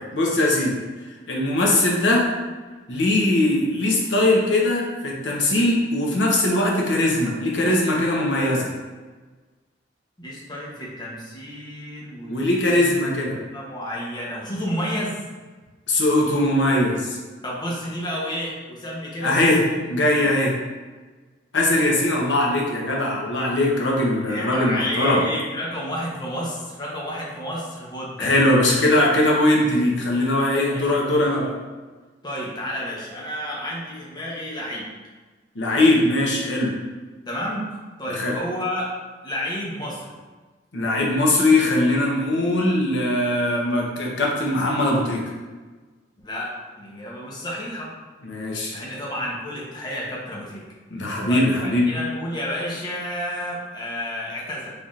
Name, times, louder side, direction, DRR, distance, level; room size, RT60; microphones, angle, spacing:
voice 1, 0.1-0.7 1.3-2.2 2.9-8.7 12.3-13.4 15.9-17.2 19.2-19.6 19.9-20.5 21.5-25.2 28.2-31.5 35.5-36.7 38.1-38.4 40.7-45.2 48.2-48.8 50.9-51.9, left 1 dB, 85° left, -2 dB, 0.8 m, -20 dB
voice 2, 10.2-15.2 17.4-19.6 20.1-20.3 24.3-28.3 30.6-30.9 32.2-34.9 37.3-37.7 38.0-38.9 39.2-40.2 46.2-47.9 48.7-50.6 51.0-54.7, equal, 25° left, -5 dB, 0.8 m, -31 dB
4.2 x 3.4 x 2.4 m, 1.3 s
head